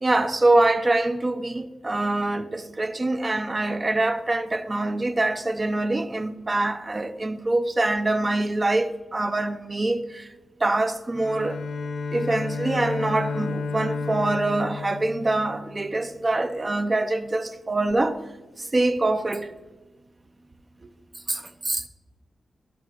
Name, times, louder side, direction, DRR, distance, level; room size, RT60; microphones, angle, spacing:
voice 1, 0.0-10.3 10.6-11.6 12.1-18.2 18.6-19.5 21.3-21.8, right 2 dB, 25° right, 0.6 m, -24 dB
Bowed string instrument, 11.1-16.0, left 4 dB, 80° left, 1.0 m, -32 dB
16.5 x 5.6 x 3.9 m
wide cardioid pair, 175°, 0 cm